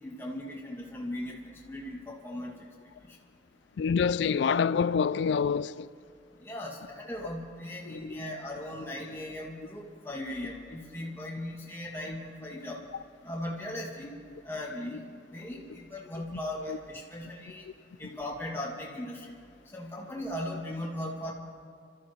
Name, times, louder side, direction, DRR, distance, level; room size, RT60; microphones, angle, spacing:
voice 1, 0.0-2.5 6.4-12.8 13.2-14.1 14.4-15.0 15.3-17.7 18.0-19.3 19.7-21.3, left 1 dB, 15° left, 2.3 m, -38 dB
voice 2, 3.8-5.9 8.1-8.2 16.7-16.8, left 6 dB, 75° left, 0.3 m, -26 dB
27.5 x 14.0 x 3.2 m
head